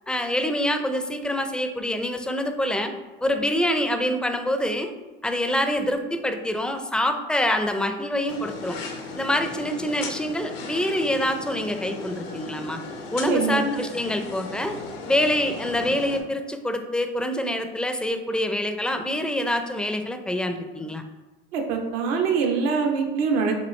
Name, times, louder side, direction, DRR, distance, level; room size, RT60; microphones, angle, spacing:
voice 1, 0.1-2.9 3.2-4.9 5.2-8.8 9.1-12.8 13.1-14.8 15.0-21.0, left 1 dB, 5° left, 6 dB, 0.4 m, -26 dB
sound 1, 8.3-16.2, left 3 dB, 80° left, 0.8 m, -36 dB
voice 2, 13.2-13.7 21.5-23.6, right 5 dB, 80° right, 2 dB, 0.8 m, -24 dB
6.3 x 2.5 x 3.1 m, 1.2 s
hypercardioid pair, 80°, 30 cm